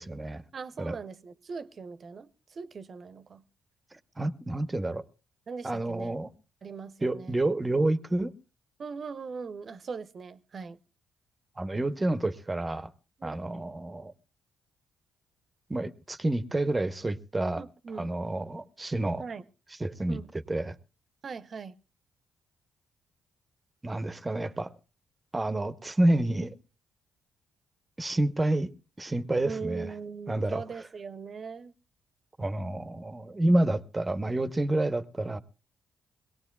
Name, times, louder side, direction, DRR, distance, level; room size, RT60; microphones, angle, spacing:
voice 1, 0.0-0.4 0.8-1.0 4.2-5.0 5.6-6.3 7.0-8.3 11.6-12.9 13.2-14.1 15.7-17.6 18.0-19.2 19.8-20.2 20.5-20.7 23.8-24.7 25.3-26.5 28.0-28.7 29.0-29.9 30.3-30.6 32.4-35.4, right 1 dB, 25° right, 0.9 m, -29 dB
voice 2, 0.5-3.4 5.5-6.2 6.6-7.4 8.8-10.8 13.2-13.4 17.5-18.1 19.2-19.4 20.1-20.3 21.2-21.8 29.4-31.7, right 5 dB, 50° right, 0.9 m, -40 dB
22.0 x 17.5 x 2.3 m
hypercardioid pair, 50°, 0 cm